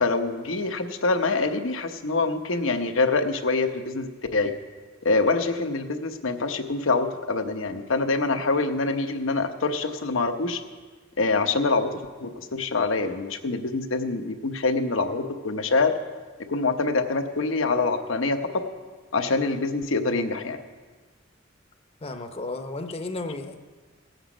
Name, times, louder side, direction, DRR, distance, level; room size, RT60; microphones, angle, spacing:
voice 1, 0.0-4.5 5.0-10.6 11.2-15.9 16.5-18.4 19.1-20.6, left 3 dB, 85° left, 6 dB, 1.0 m, -25 dB
voice 2, 22.0-23.6, left 2 dB, 30° left, 7 dB, 0.7 m, -33 dB
17.5 x 7.9 x 5.1 m, 1.4 s
head